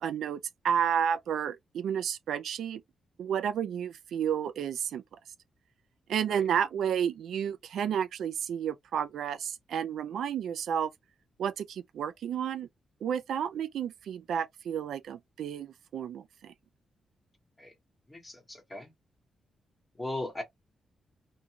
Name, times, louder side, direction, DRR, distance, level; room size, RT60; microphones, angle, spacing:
voice 1, 0.0-2.8 3.2-5.0 6.1-10.9 11.4-12.7 13.0-16.5, right 8 dB, 80° right, 0.3 m, -31 dB
voice 2, 18.1-18.9 20.0-20.4, left 2 dB, 15° left, 1.1 m, -38 dB
2.5 x 2.3 x 2.8 m
wide cardioid pair, 175°, 0 cm